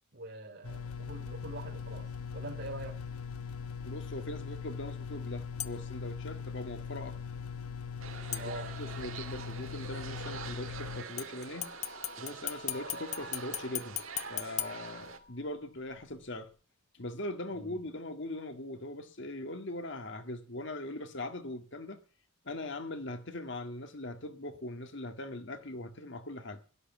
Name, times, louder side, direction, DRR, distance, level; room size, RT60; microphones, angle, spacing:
voice 1, 0.1-3.0 8.4-8.7 17.5-17.8, right 2 dB, 50° right, 3.6 m, -44 dB
sound 1, 0.6-11.0, left 6 dB, 85° left, 1.0 m, -41 dB
voice 2, 3.8-7.2 8.3-8.5 8.8-11.7 12.2-14.0 14.3-16.5 16.9-22.0 22.4-26.6, left 1 dB, 55° left, 1.8 m, -41 dB
sound 2, 5.6-6.0 8.3-9.0 11.2-15.6 16.0-16.1, left 10 dB, 30° left, 0.6 m, -40 dB
sound 3, 8.0-15.2, right 5 dB, 70° right, 2.1 m, -45 dB
13.0 x 11.5 x 7.2 m
head